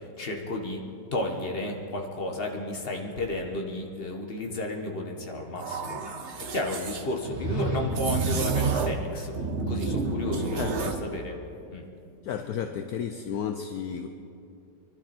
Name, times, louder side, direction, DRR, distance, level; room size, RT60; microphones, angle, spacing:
voice 1, 0.2-0.8 1.1-6.0 6.3-10.6 11.0-11.4 11.7-11.8, left 1 dB, 35° left, 2 dB, 1.7 m, -33 dB
sound 1, 5.6-7.0 7.9-9.1 9.3-11.0, right 4 dB, 45° right, 1.2 m, -29 dB
sound 2, 7.0-8.3, right 1 dB, 75° right, 2.9 m, -32 dB
voice 2, 10.6-11.0 12.2-14.1, left 8 dB, 65° left, 6 dB, 1.1 m, -32 dB
24.5 x 12.5 x 4.4 m, 2.6 s
omnidirectional pair, 1.9 m